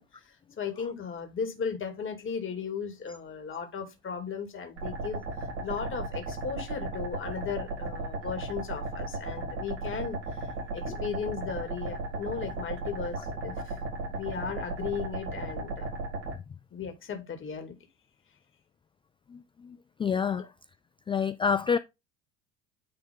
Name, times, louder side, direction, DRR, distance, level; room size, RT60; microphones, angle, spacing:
voice 1, 0.0-5.2 5.6-13.8 14.1-15.9 16.7-17.8, left 6 dB, 35° left, 2.6 m, -36 dB
sound 1, 4.8-16.3, right 2 dB, 85° right, 4.8 m, -35 dB
voice 2, 19.3-20.5 21.1-21.8, left 6 dB, 15° left, 0.3 m, -28 dB
10.5 x 3.5 x 3.6 m
hypercardioid pair, 75°, 36 cm